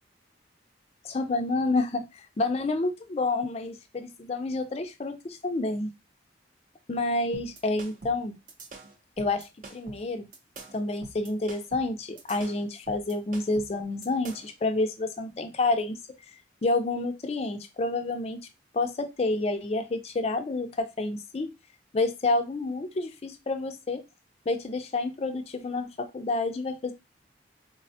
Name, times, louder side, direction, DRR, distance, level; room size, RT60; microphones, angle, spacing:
voice 1, 1.0-5.9 6.9-8.4 9.2-10.3 10.7-16.0 16.6-18.4 18.7-21.5 21.9-24.0 24.5-26.9, left 2 dB, 35° left, 8 dB, 0.3 m, -29 dB
sound 1, 7.3-14.6, right 2 dB, 45° right, 0.5 m, -45 dB
3.4 x 2.1 x 2.7 m, 0.25 s
head